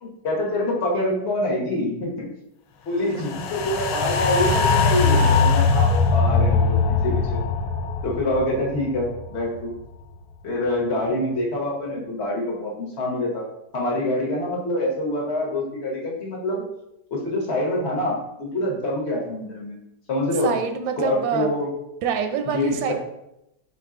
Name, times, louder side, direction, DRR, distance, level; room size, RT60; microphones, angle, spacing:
voice 1, 0.0-2.2 2.9-7.4 8.0-9.7 10.4-13.4 13.7-16.6 17.1-19.8 20.1-20.5 21.0-21.7 22.5-22.9, left 1 dB, 50° left, -1 dB, 0.9 m, -25 dB
sound 1, 3.2-9.6 9.9-10.0, left 4 dB, 80° left, 1.2 m, -21 dB
voice 2, 20.4-21.5 22.0-22.9, right 7 dB, 85° right, 7 dB, 1.3 m, -25 dB
4.7 x 2.9 x 3.6 m, 0.85 s
omnidirectional pair, 2.0 m